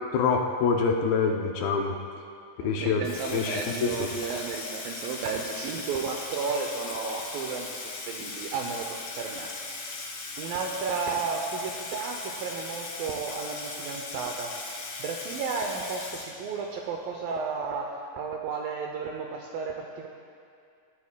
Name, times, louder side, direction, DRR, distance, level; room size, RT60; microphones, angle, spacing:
voice 1, 0.1-1.9 2.6-3.1 3.3-3.9, left 5 dB, 75° left, 1 dB, 2.3 m, -25 dB
voice 2, 2.6-10.1 10.4-20.1, right 5 dB, 80° right, 1 dB, 2.1 m, -33 dB
Water tap faucet / Sink (filling or washing), 3.0-16.8, left 3 dB, 60° left, 3.3 m, -38 dB
20.0 x 11.5 x 2.2 m, 2.4 s
omnidirectional pair, 4.7 m